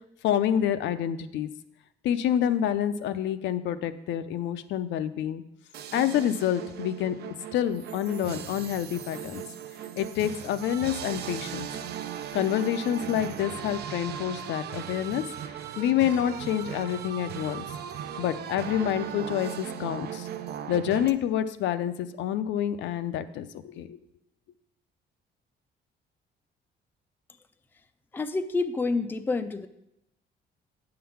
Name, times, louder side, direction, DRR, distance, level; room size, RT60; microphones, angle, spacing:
voice 1, 0.2-1.5 2.0-5.4 5.9-9.4 10.0-11.7 12.3-15.2 15.8-17.6 18.2-20.3 20.7-24.0, left 10 dB, 80° left, 11 dB, 0.6 m, -28 dB
sound 1, 5.7-21.1, right 9 dB, 60° right, 0.6 m, -38 dB
voice 2, 28.1-29.7, left 3 dB, 10° left, 8 dB, 0.4 m, -28 dB
9.4 x 3.9 x 7.0 m, 0.82 s
cardioid pair, 155°, 19 cm